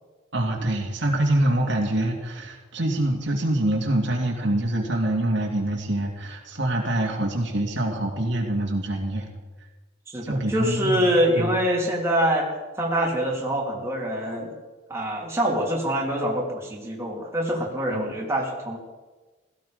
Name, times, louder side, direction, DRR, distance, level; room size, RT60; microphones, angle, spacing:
voice 1, 0.3-9.3 10.2-11.6 17.9-18.1, right 1 dB, 65° right, 1 dB, 2.6 m, -25 dB
voice 2, 10.1-12.5 12.8-14.5 14.9-18.8, equal, 15° right, -3 dB, 3.2 m, -25 dB
17.0 x 15.0 x 5.2 m, 1.2 s
head